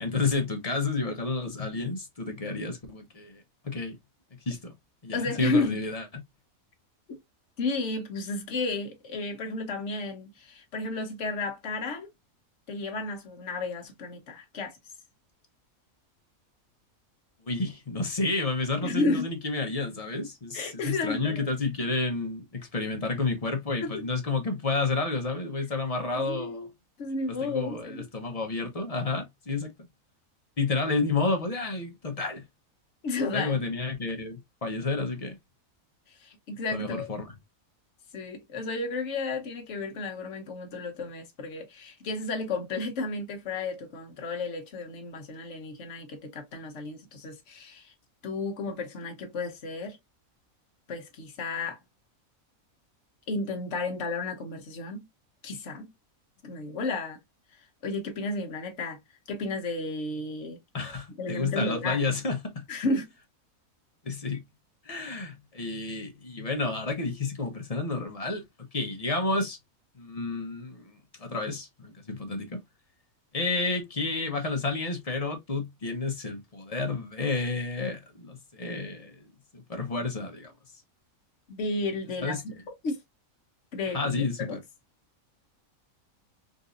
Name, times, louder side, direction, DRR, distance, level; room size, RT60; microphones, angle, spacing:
voice 1, 0.0-4.0 4.5-4.7 5.0-6.2 17.4-26.7 27.3-29.7 30.6-32.4 33.3-35.4 36.7-37.4 60.7-62.6 64.0-64.4 64.8-68.4 68.7-69.6 69.9-72.6 73.3-79.1 79.5-80.5 82.2-82.4 83.9-84.6, left 3 dB, 30° left, 0.8 m, -30 dB
voice 2, 5.1-5.8 7.1-7.2 7.6-12.1 12.7-14.7 18.8-19.3 20.5-21.5 23.8-24.1 26.1-26.7 27.0-28.0 33.0-33.6 36.2-37.1 38.1-47.9 48.2-50.0 50.9-51.8 53.3-55.1 55.4-55.9 56.4-57.2 57.8-59.0 59.3-60.6 61.2-62.1 62.7-63.1 81.5-82.5 82.8-83.0 83.7-84.6, left 3 dB, 55° left, 1.2 m, -32 dB
3.9 x 2.6 x 2.4 m
omnidirectional pair, 1.5 m